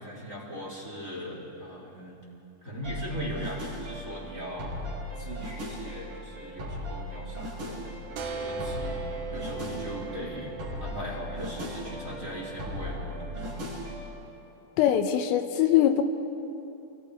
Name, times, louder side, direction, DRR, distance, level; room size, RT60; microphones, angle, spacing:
voice 1, 0.0-2.2 2.6-4.7 5.1-7.8 8.1-9.0 9.3-10.5 10.8-13.6, equal, 15° right, -4 dB, 3.7 m, -39 dB
sound 1, 2.8-14.1, equal, 40° right, 8.8 m, -38 dB
sound 2, 8.2-13.6, right 4 dB, 70° right, 2.3 m, -40 dB
voice 2, 14.8-16.0, left 11 dB, 85° left, 7 dB, 3.5 m, -22 dB
29.5 x 24.0 x 5.2 m, 2.9 s
omnidirectional pair, 5.9 m